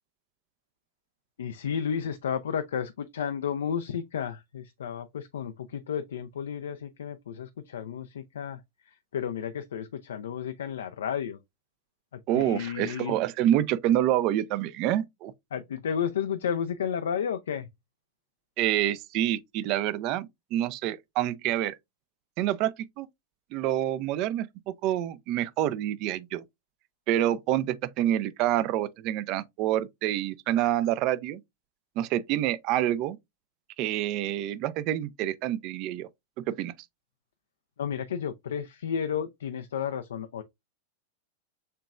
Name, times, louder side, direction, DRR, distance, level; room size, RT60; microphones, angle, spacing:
voice 1, 1.4-11.4 12.1-13.2 15.5-17.7 37.8-40.4, left 8 dB, 65° left, 0.4 m, -32 dB
voice 2, 12.3-15.3 18.6-21.8 22.4-23.1 23.5-26.4 27.1-31.4 32.0-33.2 33.8-36.1 36.4-36.7, right 12 dB, 40° right, 0.4 m, -27 dB
6.6 x 3.0 x 2.3 m
figure-of-eight pair, 90°, 0 cm